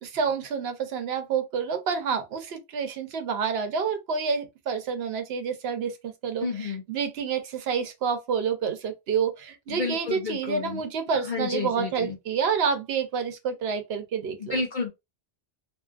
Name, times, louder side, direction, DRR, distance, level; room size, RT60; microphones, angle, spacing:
voice 1, 0.0-14.6, right 6 dB, 75° right, 0.9 m, -28 dB
voice 2, 6.4-6.8 9.7-10.8 11.3-12.1 14.5-14.9, left 4 dB, 55° left, 0.7 m, -30 dB
2.6 x 2.4 x 2.3 m
omnidirectional pair, 1.1 m